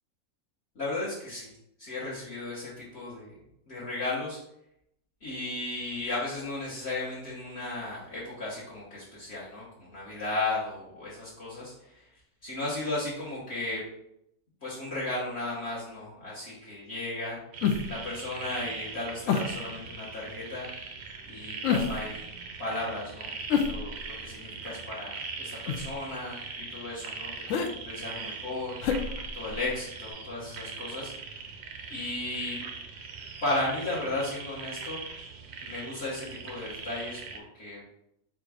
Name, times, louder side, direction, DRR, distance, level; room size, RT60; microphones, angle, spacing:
voice 1, 0.7-1.5 1.8-3.3 3.7-4.4 5.2-12.1 12.4-13.8 14.6-17.4 17.9-20.7 21.3-22.2 22.6-23.3 23.7-28.7 29.3-31.1 31.9-32.6 33.4-35.0 35.6-37.8, left 2 dB, 50° left, -8 dB, 1.4 m, -35 dB
sound 1, 17.5-37.4, right 4 dB, 60° right, 0.7 m, -41 dB
sound 2, 17.6-18.1 19.3-19.6 21.6-22.2 23.5-24.3 25.7-26.0 27.5-27.7 28.8-29.8 30.1-30.2, left 6 dB, 70° left, 0.9 m, -29 dB
4.4 x 2.5 x 4.7 m, 0.78 s
omnidirectional pair, 1.5 m